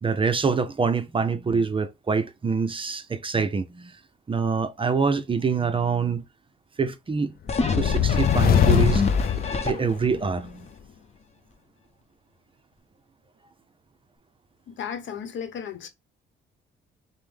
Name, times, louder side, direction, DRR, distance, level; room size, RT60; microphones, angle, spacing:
voice 1, 0.0-3.9 4.3-6.2 6.8-7.3 7.7-9.1 9.3-10.7, right 5 dB, 25° right, 0.5 m, -25 dB
sound 1, 7.5-10.2, left 9 dB, 50° left, 0.4 m, -22 dB
sound 2, 7.5-10.2 10.7-10.8, left 3 dB, 35° left, 0.9 m, -27 dB
voice 2, 14.7-15.9, left 8 dB, 70° left, 0.9 m, -34 dB
5.2 x 2.1 x 3.4 m
cardioid pair, 90°, 20 cm